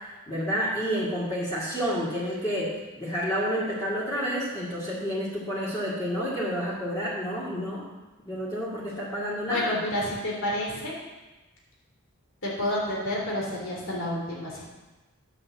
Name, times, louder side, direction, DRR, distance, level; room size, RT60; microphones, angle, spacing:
voice 1, 0.3-7.8 8.2-9.8, equal, 15° left, -7 dB, 2.1 m, -29 dB
voice 2, 9.4-10.9 12.4-14.6, left 1 dB, 60° left, -3 dB, 3.3 m, -29 dB
10.0 x 6.6 x 7.4 m, 1.1 s
head